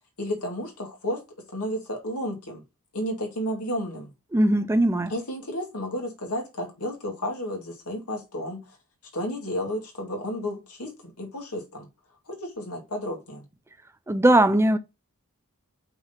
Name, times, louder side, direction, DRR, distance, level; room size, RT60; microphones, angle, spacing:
voice 1, 0.2-1.2 1.5-2.6 2.9-4.1 5.1-8.6 9.1-11.9 12.3-13.4, equal, 85° left, 2.3 m, -32 dB
voice 2, 4.3-5.1 14.1-14.8, right 1 dB, 10° right, 0.5 m, -19 dB
5.8 x 3.8 x 5.7 m
head